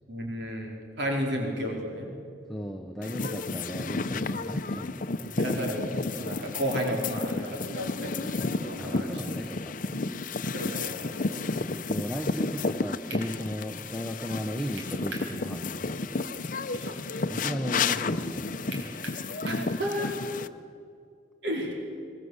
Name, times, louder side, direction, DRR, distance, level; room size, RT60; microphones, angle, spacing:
voice 1, 0.1-2.1 5.4-9.2 10.5-11.5 16.7-17.4 19.4-20.1 21.4-21.7, equal, 65° right, 0 dB, 4.6 m, -33 dB
voice 2, 2.5-5.4 8.8-10.0 11.8-16.3 17.3-19.0, equal, ahead, 4 dB, 1.0 m, -36 dB
sound 1, 3.0-20.5, left 3 dB, 45° left, 0.8 m, -32 dB
sound 2, 13.1-13.3 14.8-15.3 15.7-15.8 18.7-19.7, right 3 dB, 90° right, 5.1 m, -41 dB
22.0 x 21.5 x 8.2 m, 2.4 s
head